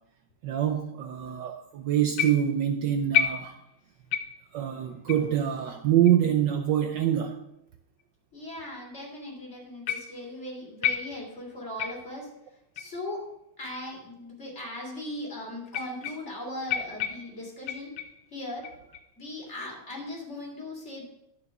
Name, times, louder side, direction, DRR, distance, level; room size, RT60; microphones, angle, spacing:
voice 1, 0.4-3.6 4.5-7.4, right 10 dB, 70° right, 6 dB, 1.2 m, -25 dB
sound 1, 2.2-2.7 3.1-3.8 4.1-4.5 5.1-5.3 6.1-6.2 7.0-7.1 8.0-8.1 9.9-10.3 10.8-11.4 11.8-12.2 12.8-13.0 13.7-13.8 14.7-14.8 15.7-16.4 16.7-18.3 18.6-19.1 19.6-20.0, left 8 dB, 80° left, 1.7 m, -31 dB
voice 2, 8.3-12.3 12.7-13.2 13.6-17.9 18.3-18.6 19.2-21.1, left 1 dB, 30° left, -1 dB, 3.4 m, -38 dB
11.0 x 6.7 x 6.0 m, 0.85 s
omnidirectional pair, 2.3 m